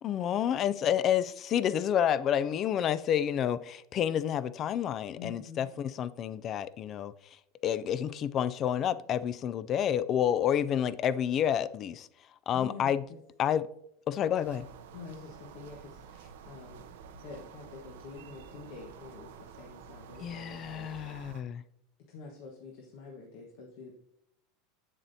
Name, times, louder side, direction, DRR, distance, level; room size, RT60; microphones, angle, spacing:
voice 1, 0.0-7.1 7.6-12.1 12.5-13.0 13.4-13.7 14.1-14.7 20.2-21.6, left 9 dB, 35° left, 0.3 m, -29 dB
voice 2, 5.1-5.7 12.5-13.2 14.9-16.8 17.2-21.2 21.5-21.6 22.1-23.9, left 4 dB, 65° left, 1.2 m, -47 dB
sound 1, 14.4-21.4, right 7 dB, 80° right, 0.6 m, -50 dB
8.2 x 7.2 x 2.7 m
supercardioid pair, 135°, 0 cm